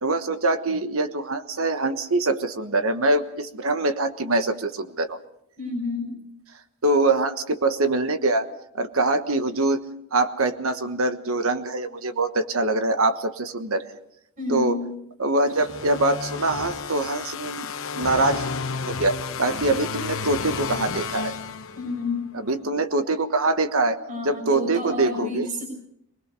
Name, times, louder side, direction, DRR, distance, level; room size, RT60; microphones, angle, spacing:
voice 1, 0.0-5.2 6.8-8.5 8.7-9.8 10.1-13.9 14.5-14.8 15.2-18.5 18.9-21.3 22.5-25.5, right 2 dB, 70° right, 8 dB, 1.3 m, -24 dB
voice 2, 5.6-6.1 14.4-14.9 21.7-22.3 24.1-25.6, left 3 dB, 35° right, 4 dB, 6.6 m, -29 dB
sound 1, 15.5-22.2, left 5 dB, 65° left, 1.1 m, -32 dB
23.5 x 20.5 x 5.4 m, 0.74 s
head